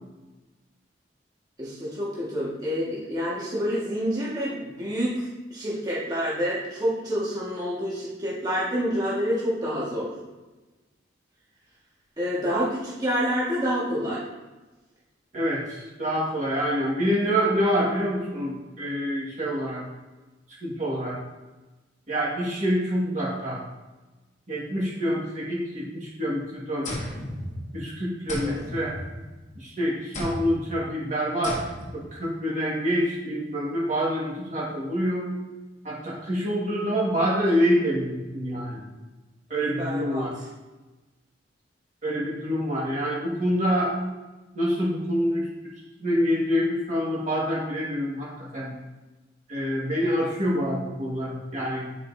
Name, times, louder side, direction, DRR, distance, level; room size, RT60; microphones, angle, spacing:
voice 1, 1.6-10.1 12.2-14.2 28.4-28.6 39.5-40.2, equal, 20° right, -8 dB, 1.8 m, -28 dB
voice 2, 15.3-19.8 20.6-21.1 22.1-23.6 24.5-26.9 27.7-28.9 29.6-31.6 31.9-35.3 35.8-38.8 39.5-40.4 42.0-44.0 44.5-45.5 46.0-48.8 49.5-51.9, equal, 40° right, -6 dB, 1.8 m, -26 dB
sound 1, 26.8-27.9 28.3-29.6 30.1-30.7 31.4-32.1, left 1 dB, 40° left, 1.2 m, -34 dB
9.5 x 5.2 x 2.8 m, 1.1 s
head